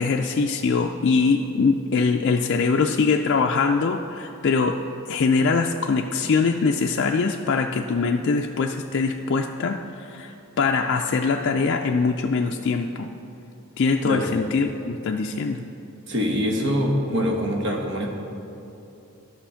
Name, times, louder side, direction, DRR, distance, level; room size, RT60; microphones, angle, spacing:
voice 1, 0.0-4.8 5.1-13.1 13.8-15.6, left 4 dB, 55° left, 2 dB, 0.4 m, -23 dB
voice 2, 14.0-14.3 16.1-18.1, equal, 55° right, 1 dB, 1.4 m, -24 dB
11.5 x 6.3 x 5.7 m, 2.8 s
head